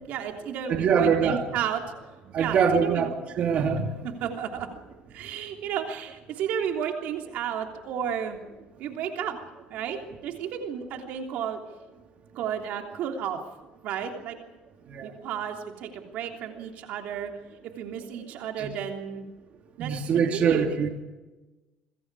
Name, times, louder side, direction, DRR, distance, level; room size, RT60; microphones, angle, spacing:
voice 1, 0.0-1.8 2.4-3.1 4.0-4.7 5.1-8.4 8.8-9.3 9.7-11.6 12.3-13.4 13.8-14.4 15.0-17.3 17.6-19.3 19.8-20.8, right 8 dB, 70° right, 3 dB, 3.2 m, -32 dB
voice 2, 0.7-1.4 2.3-4.0 14.9-15.1 18.6-18.7 19.8-20.9, right 6 dB, 50° right, 3 dB, 3.3 m, -24 dB
26.5 x 22.5 x 4.9 m, 1.1 s
cardioid pair, 125°, 3 cm